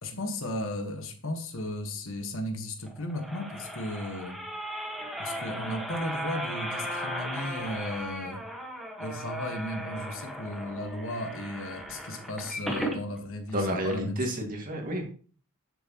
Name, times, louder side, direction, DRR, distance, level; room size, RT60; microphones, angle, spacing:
voice 1, 0.0-4.4 5.2-8.4 9.0-14.2, left 1 dB, 60° left, 6 dB, 1.5 m, -35 dB
sound 1, 2.8-13.0 13.5-13.6 13.9-14.0, equal, ahead, 1.5 m, -36 dB
voice 2, 13.5-15.1, equal, 40° right, 2 dB, 2.2 m, -30 dB
11.0 x 7.3 x 3.1 m, 0.42 s
head